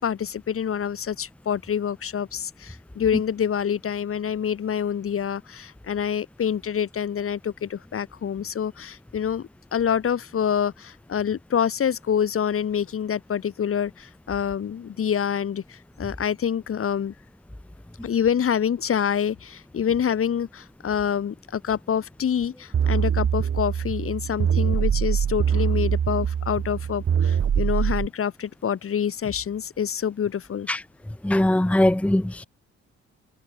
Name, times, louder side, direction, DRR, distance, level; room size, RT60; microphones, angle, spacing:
voice 1, 0.0-17.1 18.0-30.7, left 8 dB, 45° left, 1.6 m, -26 dB
sound 1, 22.7-28.1, right 8 dB, 50° right, 2.8 m, -23 dB
voice 2, 31.2-32.4, left 1 dB, 5° left, 1.0 m, -21 dB
cardioid pair, 90°, 30 cm